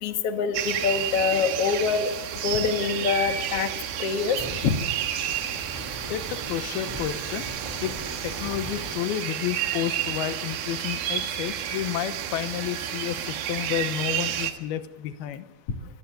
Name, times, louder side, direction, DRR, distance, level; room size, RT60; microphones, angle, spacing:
voice 1, 0.0-2.1 2.4-3.7 4.0-4.7, left 6 dB, 50° left, 6 dB, 2.1 m, -25 dB
sound 1, 0.5-14.5, right 10 dB, 75° right, 3.3 m, -31 dB
Fire, 4.4-9.0, right 1 dB, 5° right, 2.6 m, -40 dB
voice 2, 6.1-7.5 7.8-8.0 8.2-15.5, left 12 dB, 85° left, 11 dB, 2.8 m, -31 dB
24.5 x 19.0 x 6.8 m, 1.1 s
omnidirectional pair, 4.4 m